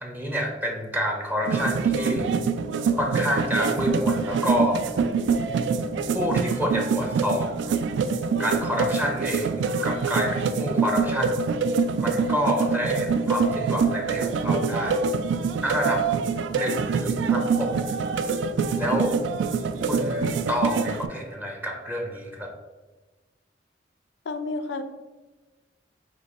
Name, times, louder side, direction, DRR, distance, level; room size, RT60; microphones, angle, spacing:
voice 1, 0.0-2.3 3.0-4.8 6.1-7.5 8.4-11.4 12.0-15.0 15.6-16.0 16.5-17.9 18.8-19.2 19.9-22.5, equal, 10° right, 1 dB, 0.5 m, -28 dB
sound 1, 1.4-21.1, right 5 dB, 90° right, 0.3 m, -25 dB
voice 2, 24.3-24.8, left 3 dB, 80° left, 9 dB, 0.4 m, -30 dB
5.1 x 2.2 x 4.1 m, 1.2 s
head